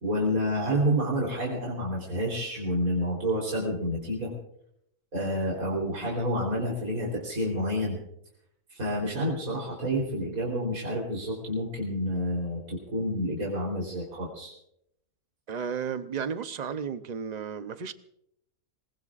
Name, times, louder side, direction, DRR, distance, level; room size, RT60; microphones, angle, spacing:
voice 1, 0.0-4.3 5.1-8.0 8.7-14.5, equal, 70° right, -3 dB, 4.3 m, -29 dB
voice 2, 15.5-17.9, right 7 dB, 40° right, 11 dB, 0.6 m, -33 dB
26.5 x 20.5 x 2.5 m, 0.76 s
omnidirectional pair, 1.6 m